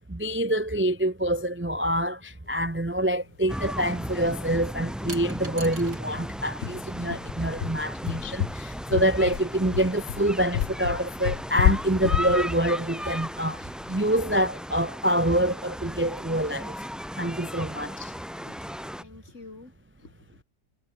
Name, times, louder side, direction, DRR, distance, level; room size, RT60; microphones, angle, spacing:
voice 1, 0.1-16.8 17.2-18.1, right 1 dB, 15° right, 0.4 m, -26 dB
sound 1, 3.2-3.3 5.1-6.1 6.4-7.2, right 3 dB, 65° right, 4.7 m, -43 dB
sound 2, 3.5-19.0, equal, ahead, 5.5 m, -36 dB
sound 3, 3.7-3.8 4.1-4.2 4.6-4.7 5.1-5.2 5.6-14.1, left 11 dB, 75° left, 0.6 m, -29 dB
voice 2, 19.0-19.7 20.0-20.4, left 3 dB, 40° left, 3.4 m, -49 dB
omnidirectional pair, 1.9 m